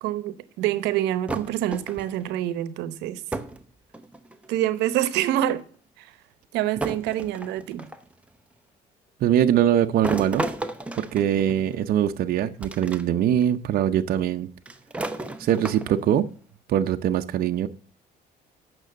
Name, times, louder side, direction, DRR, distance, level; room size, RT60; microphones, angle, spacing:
voice 1, 0.0-3.2 4.5-5.6 6.0-6.1 6.5-7.8, right 12 dB, 90° right, 0.9 m, -26 dB
sound 1, 1.3-2.2 3.3-3.6 3.9-4.5 5.6-5.7 6.8-8.1 10.0-11.9 12.6-13.0 13.4-13.5 14.7-16.1, right 2 dB, 5° right, 1.0 m, -33 dB
voice 2, 9.2-10.5 11.0-14.5 15.4-16.3 16.7-17.7, right 10 dB, 60° right, 0.7 m, -22 dB
9.0 x 6.2 x 7.6 m
cardioid pair, 110°, 17 cm